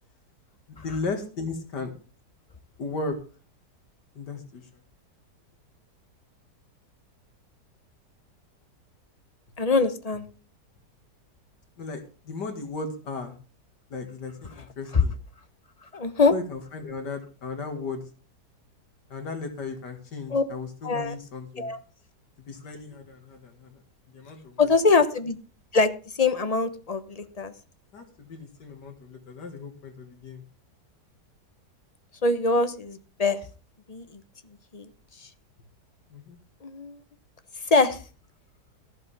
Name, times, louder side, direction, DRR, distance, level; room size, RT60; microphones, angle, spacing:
voice 1, 0.7-1.9 2.8-3.2 4.2-4.6 11.8-13.3 13.9-15.2 16.3-18.1 19.1-21.7 22.5-23.7 24.1-24.7 27.9-30.4 36.1-36.4, left 3 dB, 85° left, 6 dB, 2.6 m, -36 dB
voice 2, 9.6-10.2 14.9-15.0 15.9-16.3 20.3-20.4 20.8-21.1 21.6-21.8 24.6-25.4 25.7-27.5 32.2-33.4 33.9-34.0 34.7-34.9 36.6-37.0 37.7-38.0, left 4 dB, 25° left, 10 dB, 0.9 m, -23 dB
14.0 x 12.0 x 3.5 m, 0.36 s
omnidirectional pair, 1.8 m